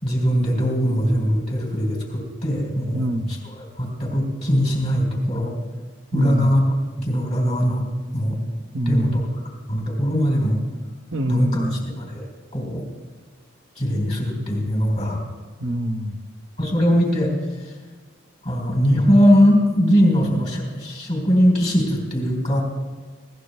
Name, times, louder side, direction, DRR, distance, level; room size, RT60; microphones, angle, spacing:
voice 1, 0.0-5.6 6.1-6.6 7.0-7.8 8.1-8.4 8.9-9.4 9.7-10.6 11.3-12.2 12.5-12.9 13.8-15.2 16.6-17.3 17.6-17.7 18.4-22.6, equal, 35° left, -1 dB, 4.1 m, -21 dB
voice 2, 2.9-3.3 6.1-6.5 8.7-9.2 11.1-11.9 15.6-16.2, equal, 70° right, 5 dB, 1.0 m, -25 dB
21.5 x 17.5 x 2.3 m, 1.4 s
head